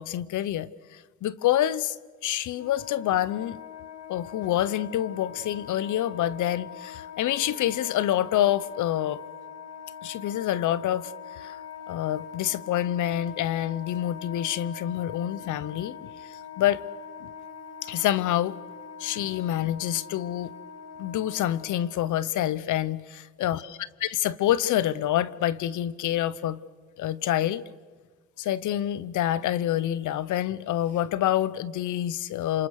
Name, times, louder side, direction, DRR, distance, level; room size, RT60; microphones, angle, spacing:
voice 1, 0.0-1.9 2.2-3.6 4.1-9.2 10.0-11.6 11.9-16.8 17.2-17.3 17.8-18.6 19.0-20.5 21.0-23.6 24.0-26.6 27.0-27.6 28.4-32.7, left 12 dB, 80° left, 0.9 m, -27 dB
Wind instrument woodwind instrument, 2.5-22.0, left 7 dB, 55° left, 2.3 m, -43 dB
27.5 x 26.5 x 6.6 m
cardioid pair, 90°, 30 cm